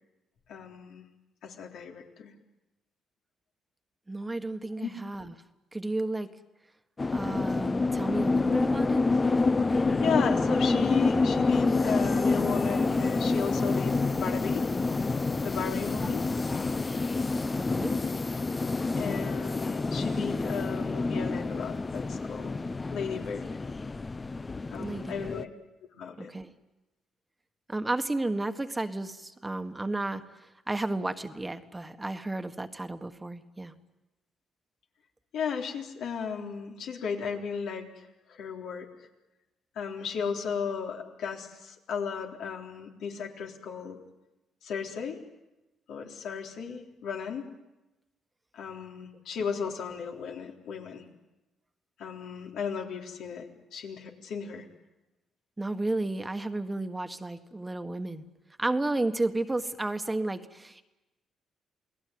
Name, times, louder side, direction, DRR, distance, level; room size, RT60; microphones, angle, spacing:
voice 1, 0.5-1.1 1.4-2.3 4.8-4.9 10.0-14.7 15.4-16.3 19.0-22.5 22.9-23.5 24.7-25.5 25.9-26.3 35.3-38.9 39.8-44.0 44.6-45.2 45.9-47.5 48.5-51.1 52.0-54.7, left 6 dB, 75° left, 1 dB, 3.7 m, -35 dB
voice 2, 4.1-5.3 5.7-6.3 7.1-9.0 17.5-18.0 24.8-25.4 26.2-26.5 27.7-33.7 55.6-58.3 58.6-60.8, right 2 dB, 15° right, 8 dB, 1.5 m, -32 dB
sound 1, 7.0-25.4, left 3 dB, 25° left, 0.9 m, -28 dB
29.0 x 18.5 x 9.6 m, 1.0 s
cardioid pair, 90°, 0 cm